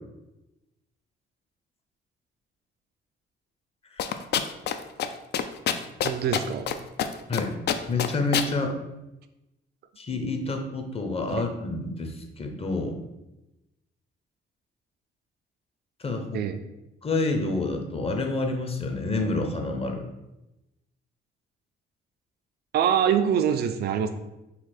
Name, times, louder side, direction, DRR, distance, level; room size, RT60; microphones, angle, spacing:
sound 1, 4.0-4.7 5.0-5.1 5.3-6.7 7.0-7.4 7.7-8.5, left 9 dB, 55° left, 0.4 m, -25 dB
voice 1, 6.0-6.7 11.3-11.4 16.3-16.6 22.7-24.1, right 8 dB, 55° right, 8 dB, 0.4 m, -24 dB
voice 2, 7.9-8.8 10.0-13.0 16.0-16.4 17.0-20.1, left 2 dB, 30° left, 4 dB, 0.7 m, -28 dB
4.0 x 2.4 x 4.3 m, 0.95 s
cardioid pair, 90°, 20 cm